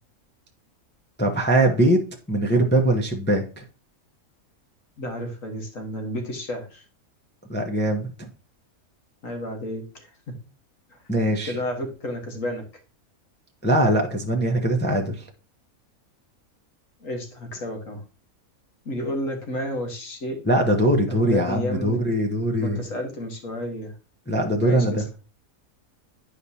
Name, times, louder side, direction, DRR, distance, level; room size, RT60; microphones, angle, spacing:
voice 1, 1.2-3.6 7.5-8.3 11.1-11.5 13.6-15.3 20.4-22.8 24.3-25.0, right 1 dB, 10° left, 2 dB, 0.7 m, -22 dB
voice 2, 5.0-6.8 9.2-10.4 11.5-12.6 17.0-18.0 18.9-20.4 21.1-22.0 22.6-23.9 24.6-25.0, left 1 dB, 65° left, 2 dB, 1.8 m, -31 dB
9.6 x 5.0 x 2.8 m, 0.33 s
omnidirectional pair, 1.5 m